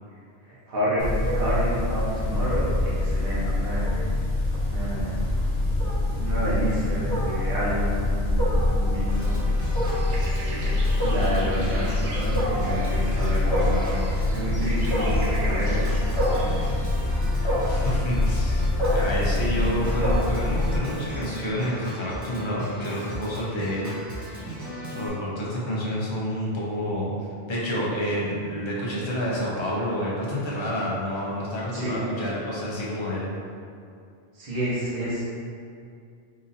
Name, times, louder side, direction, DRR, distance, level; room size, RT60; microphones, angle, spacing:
voice 1, 0.4-4.1 4.6-5.2 6.2-9.4 10.3-14.0 14.3-16.2 16.4-16.5 31.7-31.9 34.3-35.2, right 1 dB, 55° right, -9 dB, 1.2 m, -30 dB
Wild animals, 1.0-20.8, left 2 dB, 75° left, 1.0 m, -24 dB
Organ, 9.1-25.1, right 1 dB, 30° right, 0.3 m, -38 dB
sound 1, 10.1-16.7, right 1 dB, 80° right, 1.0 m, -39 dB
voice 2, 17.7-23.9 24.2-24.3 24.9-27.1 27.5-33.3, equal, 30° left, -6 dB, 0.6 m, -29 dB
3.9 x 2.6 x 2.6 m, 2.4 s
omnidirectional pair, 1.2 m